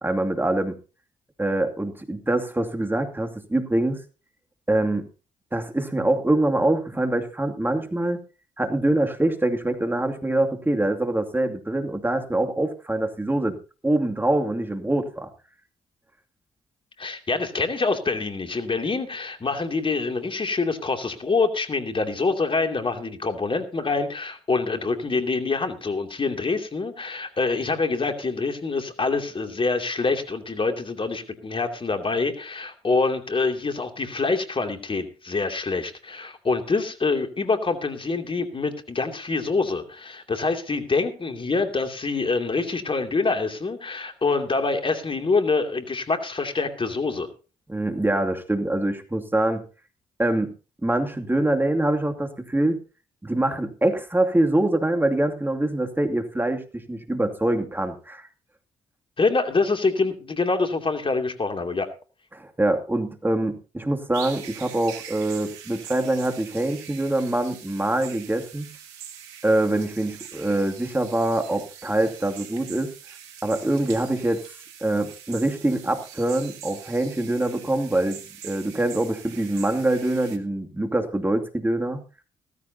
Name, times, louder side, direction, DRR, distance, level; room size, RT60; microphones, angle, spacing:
voice 1, 0.0-0.8 1.4-4.0 4.7-5.0 5.5-8.2 8.6-13.6 13.8-15.3 47.7-49.6 50.2-50.5 50.8-52.8 53.2-58.3 62.3-68.7 69.4-72.9 73.4-74.4 74.8-78.2 78.4-82.0, right 1 dB, 15° right, 5 dB, 2.5 m, -24 dB
voice 2, 17.0-47.3 59.2-61.9, left 3 dB, 35° left, 6 dB, 2.8 m, -25 dB
sound 1, 64.1-80.4, right 8 dB, 85° right, 1.7 m, -43 dB
16.5 x 15.0 x 2.8 m, 0.34 s
hypercardioid pair, 45°, 15 cm